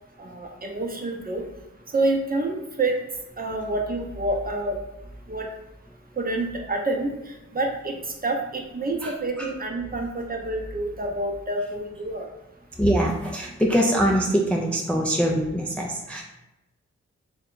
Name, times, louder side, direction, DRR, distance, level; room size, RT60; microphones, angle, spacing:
voice 1, 0.2-1.4 1.9-2.9 3.4-4.8 5.3-5.5 6.2-7.9 8.2-12.3, right 2 dB, 30° right, 1 dB, 0.6 m, -28 dB
voice 2, 9.0-9.5 12.8-16.2, equal, 5° left, -1 dB, 0.4 m, -23 dB
2.7 x 2.2 x 3.8 m, 0.96 s
cardioid pair, 60°, 29 cm